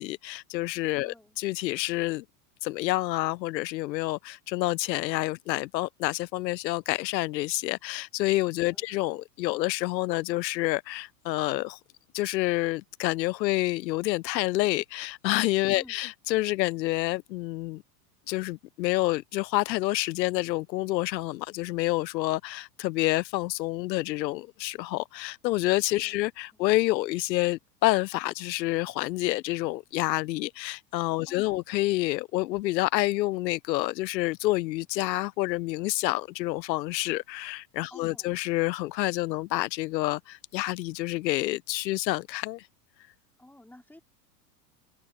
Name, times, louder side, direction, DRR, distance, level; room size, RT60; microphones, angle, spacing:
voice 1, 0.0-2.2 2.6-11.8 12.1-17.8 18.3-42.7, left 18 dB, 85° left, 0.6 m, -28 dB
voice 2, 1.0-1.4 8.6-8.9 15.7-16.0 26.0-26.2 26.5-26.6 31.3-31.7 37.9-38.4 43.4-44.0, left 1 dB, 5° left, 3.5 m, -53 dB
hypercardioid pair, 110°, 50 cm